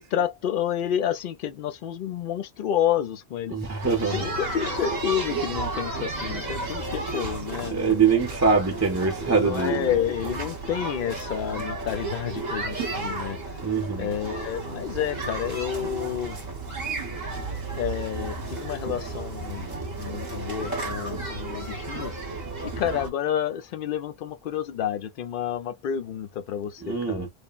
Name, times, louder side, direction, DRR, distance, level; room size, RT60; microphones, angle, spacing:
voice 1, 0.0-3.5 4.1-8.3 9.3-13.4 14.0-16.4 17.7-22.1 22.6-27.3, left 10 dB, 65° left, 0.7 m, -30 dB
voice 2, 3.5-4.3 7.7-9.9 13.6-14.1 26.8-27.3, right 5 dB, 20° right, 0.6 m, -23 dB
sound 1, 3.8-23.1, right 3 dB, 45° right, 1.0 m, -33 dB
3.2 x 2.1 x 2.3 m
omnidirectional pair, 1.0 m